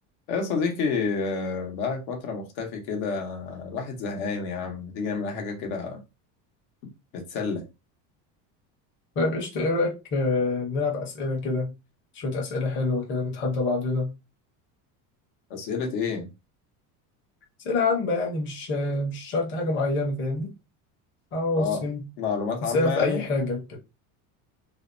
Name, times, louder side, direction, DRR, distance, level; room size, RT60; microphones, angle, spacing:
voice 1, 0.3-6.0 7.1-7.6 15.5-16.3 21.6-21.8 22.2-23.2, left 5 dB, 75° left, 0.9 m, -29 dB
voice 2, 9.2-11.7 12.1-14.1 17.6-20.5 21.3-22.0 22.7-23.8, left 3 dB, 30° left, 0.7 m, -26 dB
2.6 x 2.1 x 2.5 m
cardioid pair, 140°, 41 cm